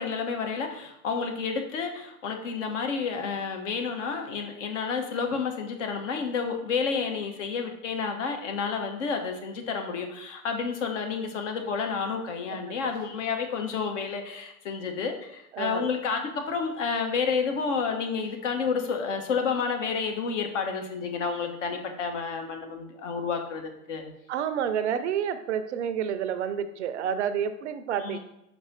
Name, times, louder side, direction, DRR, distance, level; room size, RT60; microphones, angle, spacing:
voice 1, 0.0-24.1 28.0-28.2, left 5 dB, 55° left, 4 dB, 1.1 m, -30 dB
voice 2, 15.5-15.9 24.3-28.2, right 8 dB, 50° right, 11 dB, 0.5 m, -29 dB
5.2 x 4.6 x 4.0 m, 0.87 s
figure-of-eight pair, 100°, 44 cm